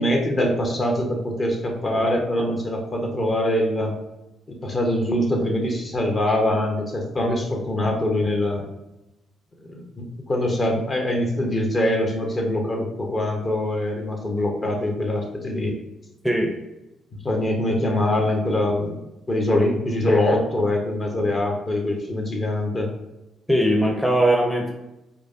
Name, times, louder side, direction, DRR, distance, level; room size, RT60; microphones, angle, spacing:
voice 1, 0.0-3.9 4.5-8.6 9.6-15.7 17.2-19.0 19.3-22.9, left 1 dB, 40° left, 1 dB, 0.8 m, -23 dB
voice 2, 23.5-24.7, right 1 dB, 5° left, 1 dB, 0.6 m, -19 dB
4.8 x 2.0 x 2.6 m, 0.95 s
hypercardioid pair, 45°, 0 cm